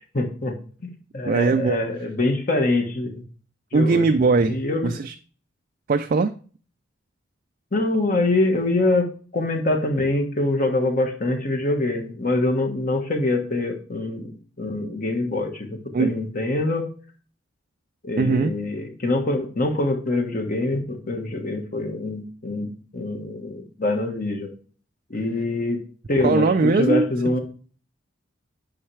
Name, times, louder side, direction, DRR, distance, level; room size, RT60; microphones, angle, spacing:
voice 1, 0.1-0.6 0.8-3.2 3.7-4.1 4.5-4.9 7.7-9.1 9.3-14.3 14.6-16.9 18.0-24.5 25.1-25.8 26.1-27.4, left 2 dB, 45° left, 1.2 m, -24 dB
voice 2, 1.3-1.8 3.7-5.1 5.9-6.4 15.9-16.1 18.2-18.5 26.2-27.1, right 3 dB, 45° right, 0.4 m, -20 dB
8.6 x 5.7 x 3.2 m
head